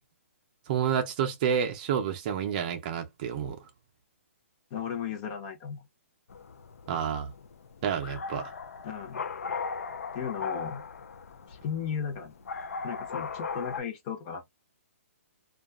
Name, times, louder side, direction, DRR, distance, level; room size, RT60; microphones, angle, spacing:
voice 1, 0.7-3.6 6.9-7.3 7.8-8.5, right 8 dB, 35° right, 0.5 m, -29 dB
voice 2, 4.7-5.8 8.8-9.2 10.1-10.8 11.5-12.3 12.8-14.5, left 7 dB, 30° left, 0.7 m, -35 dB
sound 1, 6.3-13.8, left 5 dB, 85° left, 0.4 m, -38 dB
2.6 x 2.3 x 2.3 m
hypercardioid pair, 150°, 8 cm